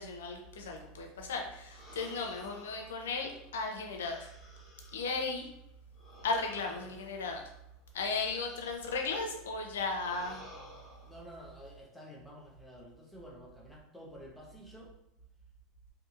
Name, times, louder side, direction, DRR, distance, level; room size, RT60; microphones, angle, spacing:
voice 1, 0.0-4.3 4.9-5.5 6.2-7.4 7.9-10.4, left 4 dB, 90° left, 3 dB, 0.5 m, -35 dB
sound 1, 1.7-5.3 5.9-9.3 9.9-11.3, left 1 dB, 25° left, 1.0 m, -55 dB
voice 2, 11.0-14.9, equal, ahead, -3 dB, 0.8 m, -50 dB
2.6 x 2.6 x 2.5 m, 0.84 s
hypercardioid pair, 105°, 0 cm